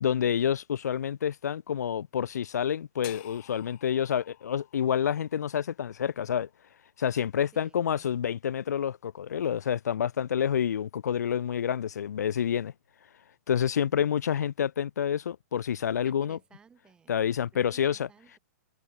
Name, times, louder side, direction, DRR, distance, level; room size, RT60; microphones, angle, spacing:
voice 1, 0.0-6.5 7.0-12.7 13.5-16.4 17.1-18.1, left 8 dB, 70° left, 1.3 m, -28 dB
sound 1, 3.0-7.1, left 23 dB, 30° left, 2.8 m, -52 dB
voice 2, 7.5-8.2 16.0-18.4, right 6 dB, 10° right, 4.8 m, -58 dB
hypercardioid pair, 170°, 9 cm